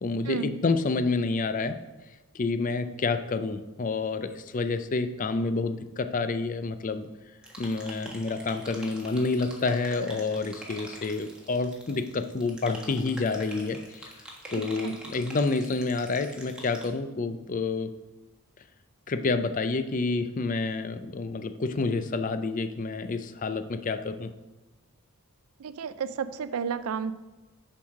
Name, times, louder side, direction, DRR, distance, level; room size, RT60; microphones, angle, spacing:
voice 1, 0.0-1.8 2.3-7.1 7.6-14.0 14.5-17.9 19.1-24.3, left 3 dB, 35° left, 10 dB, 0.4 m, -28 dB
sound 1, 7.4-16.8, right 1 dB, 5° right, 1.3 m, -45 dB
voice 2, 25.6-27.1, right 6 dB, 80° right, 13 dB, 0.4 m, -32 dB
7.1 x 4.7 x 6.4 m, 1.1 s
head